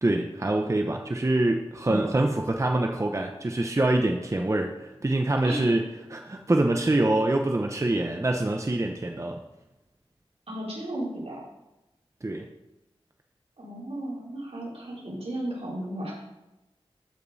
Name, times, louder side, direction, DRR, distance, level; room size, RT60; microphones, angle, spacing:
voice 1, 0.0-5.8 6.1-9.4 12.2-12.5, right 2 dB, 30° right, 3 dB, 0.8 m, -25 dB
voice 2, 1.8-2.1 5.4-5.6 10.5-11.4 13.6-16.2, right 1 dB, 75° right, -6 dB, 3.9 m, -34 dB
14.0 x 5.3 x 4.1 m, 0.99 s
wide cardioid pair, 60°, 11 cm